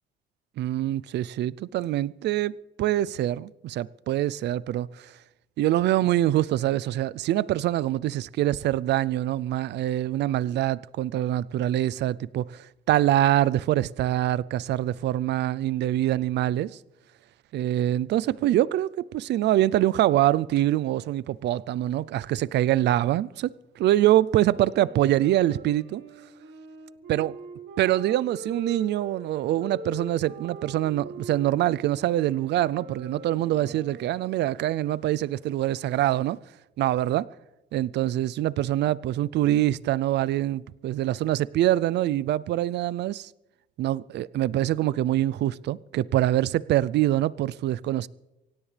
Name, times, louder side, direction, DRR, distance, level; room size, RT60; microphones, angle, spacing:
voice 1, 0.6-5.2 5.6-16.8 17.5-26.0 27.1-27.3 27.8-36.4 36.8-37.3 37.7-43.3 43.8-48.1, right 13 dB, 65° right, 0.5 m, -24 dB
Wind instrument woodwind instrument, 24.4-34.5, right 2 dB, 85° right, 4.8 m, -43 dB
24.0 x 17.5 x 3.4 m
cardioid pair, 150°, 19 cm